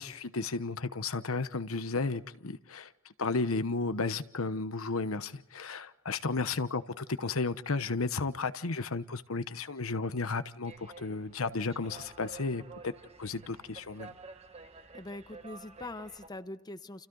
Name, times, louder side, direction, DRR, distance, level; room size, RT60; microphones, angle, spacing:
voice 1, 0.0-12.9 13.2-14.1, left 3 dB, 85° left, 12 dB, 1.1 m, -33 dB
sound 1, 10.6-16.3, right 4 dB, 30° right, 1.5 m, -51 dB
voice 2, 14.9-17.1, left 2 dB, 20° left, 11 dB, 0.9 m, -43 dB
30.0 x 29.0 x 4.0 m, 0.85 s
head